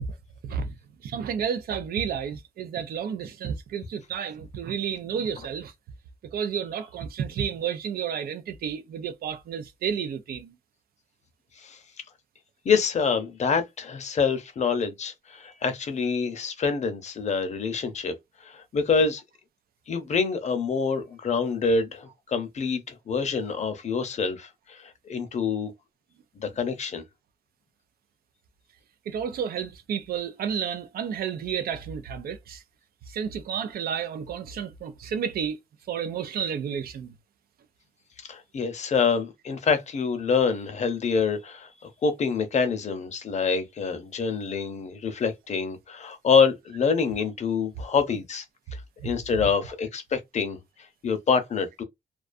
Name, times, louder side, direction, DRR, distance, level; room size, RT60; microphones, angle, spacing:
voice 1, 1.0-5.7 6.3-10.5 29.1-32.6 33.1-35.6 35.9-37.1 49.0-49.1, right 7 dB, 80° right, 0.4 m, -31 dB
voice 2, 12.6-18.1 18.4-19.2 19.9-25.7 26.4-27.0 38.2-48.4 48.7-51.8, left 5 dB, 50° left, 0.6 m, -26 dB
2.3 x 2.3 x 2.5 m
wide cardioid pair, 130°, 15 cm